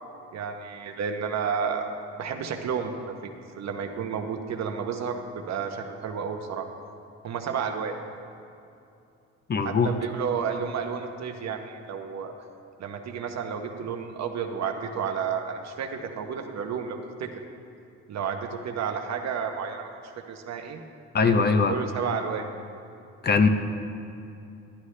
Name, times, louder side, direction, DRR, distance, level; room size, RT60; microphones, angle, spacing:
voice 1, 0.3-1.9 2.2-6.7 7.2-7.9 9.6-12.3 12.8-17.3 18.1-19.9 20.3-20.8 21.2-22.5, right 6 dB, 60° right, 5 dB, 0.9 m, -31 dB
voice 2, 9.5-9.9 21.1-21.7 23.2-23.5, left 4 dB, 35° left, 8 dB, 0.6 m, -21 dB
11.5 x 11.0 x 3.2 m, 2.7 s
cardioid pair, 90°, 30 cm